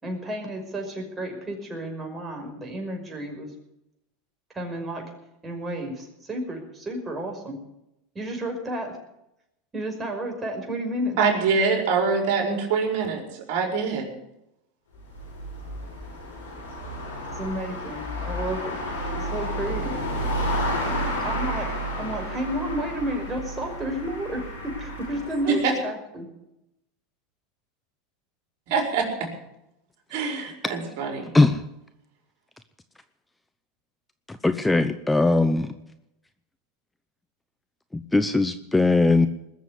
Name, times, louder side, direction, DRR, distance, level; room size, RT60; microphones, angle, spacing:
voice 1, 0.0-3.5 4.5-5.0 5.4-7.6 8.1-8.9 9.7-11.2 17.3-18.8 19.1-20.0 20.8-26.2, right 1 dB, 20° right, 2 dB, 5.7 m, -32 dB
voice 2, 11.2-14.1 25.5-25.7 28.7-29.1 30.1-31.3, right 5 dB, 60° right, 2 dB, 5.0 m, -24 dB
sound 1, 14.9-25.6, equal, 90° left, 7.6 m, -31 dB
voice 3, 34.3-35.7 37.9-39.3, left 3 dB, 10° left, 10 dB, 0.9 m, -20 dB
20.5 x 7.3 x 9.7 m, 0.85 s
hypercardioid pair, 95°, 0 cm